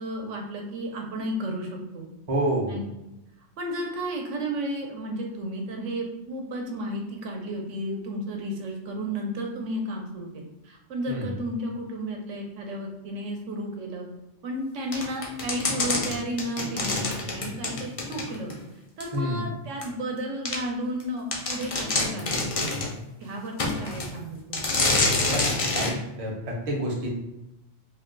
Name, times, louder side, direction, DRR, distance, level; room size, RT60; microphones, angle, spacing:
voice 1, 0.0-2.1 2.7-2.8 3.6-14.1 14.4-18.5 19.0-22.8 23.2-24.7, right 1 dB, 80° right, 1 dB, 1.0 m, -33 dB
voice 2, 2.3-2.7 11.1-11.3 19.1-19.5 25.3-27.1, right 1 dB, 40° right, -1 dB, 0.5 m, -28 dB
sound 1, 14.9-18.6 19.0-19.1 19.8-19.9 20.4-20.6 21.0-21.1 21.3-22.9 23.6-24.1 24.5-25.9, left 2 dB, 60° left, 0.3 m, -27 dB
2.6 x 2.2 x 3.6 m, 0.92 s
omnidirectional pair, 1.3 m